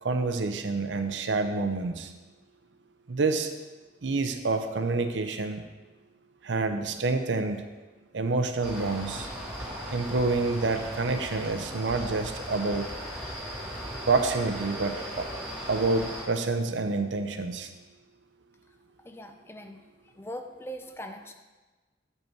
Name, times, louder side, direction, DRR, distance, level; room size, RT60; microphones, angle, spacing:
voice 1, 0.0-2.1 3.1-3.5 4.0-5.6 6.4-7.7 8.1-9.3 9.9-12.9 14.1-15.3 15.7-17.7, right 3 dB, 85° right, 7 dB, 0.7 m, -28 dB
sound 1, 8.6-16.2, equal, 5° right, 2.0 m, -37 dB
voice 2, 19.0-19.8 20.1-21.3, equal, 15° left, 5 dB, 0.5 m, -41 dB
8.3 x 5.4 x 4.5 m, 1.2 s
head